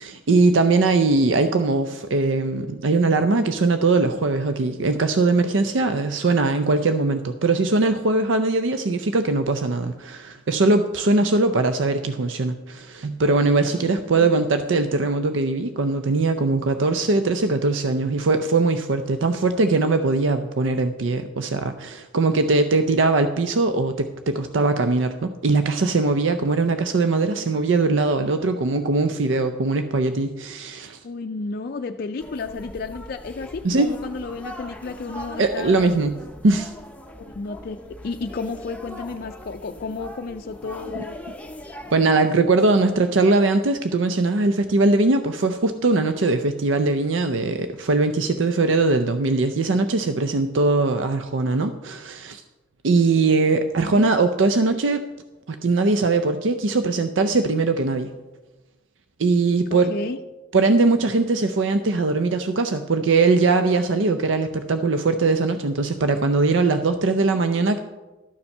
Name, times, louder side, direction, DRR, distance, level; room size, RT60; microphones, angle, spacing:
voice 1, 0.0-31.0 33.6-33.9 35.4-36.2 36.4-36.7 41.0-41.1 41.9-52.4 52.8-55.0 55.5-58.1 59.2-59.9 60.5-67.8, right 3 dB, 85° right, 8 dB, 0.6 m, -21 dB
voice 2, 13.7-14.3 31.0-35.9 37.2-41.2 53.8-54.0 59.7-60.2, left 4 dB, 50° left, 5 dB, 0.4 m, -32 dB
sound 1, 32.2-41.9, left 1 dB, 10° left, 0.7 m, -40 dB
12.5 x 7.1 x 5.4 m, 1.1 s
head